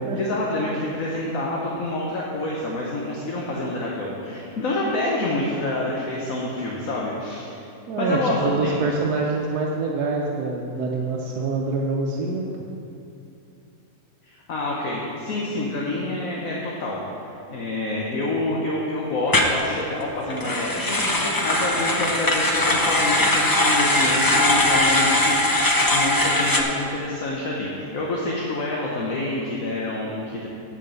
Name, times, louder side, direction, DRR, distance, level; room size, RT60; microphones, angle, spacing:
voice 1, 0.2-7.6 8.0-8.8 14.2-30.5, left 2 dB, 65° left, -3 dB, 1.4 m, -27 dB
voice 2, 7.9-12.4, right 3 dB, 90° right, -1 dB, 1.3 m, -25 dB
sound 1, 19.3-19.6 20.3-26.6, left 1 dB, 35° left, 0.3 m, -20 dB
10.0 x 5.3 x 6.8 m, 2.7 s
omnidirectional pair, 1.6 m